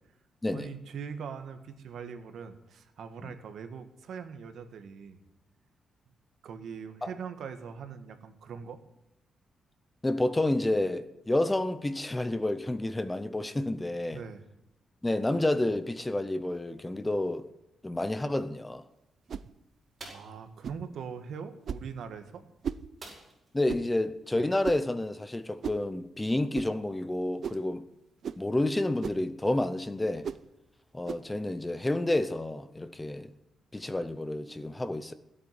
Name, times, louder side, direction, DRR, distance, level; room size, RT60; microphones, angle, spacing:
voice 1, 0.5-5.2 6.4-8.8 14.1-14.5 20.0-22.4, right 6 dB, 70° right, 1.7 m, -41 dB
voice 2, 10.0-14.2 15.0-17.5 17.8-18.8 23.5-27.9 28.4-30.3 30.9-33.3 33.7-35.1, left 1 dB, 10° left, 0.7 m, -29 dB
sound 1, 19.3-19.5 20.6-20.9 21.7-21.9 22.6-22.9 23.7-23.9 24.6-24.9 25.6-25.9 26.5-26.7 27.4-27.7 28.2-28.5 29.0-29.3 30.2-30.5 31.1-31.3, right 7 dB, 50° right, 0.7 m, -36 dB
sound 2, 20.0-20.4 23.0-23.6 23.9-24.0 24.4-24.6, right 2 dB, 25° right, 5.3 m, -47 dB
16.5 x 8.6 x 9.8 m
cardioid pair, 140°, 0 cm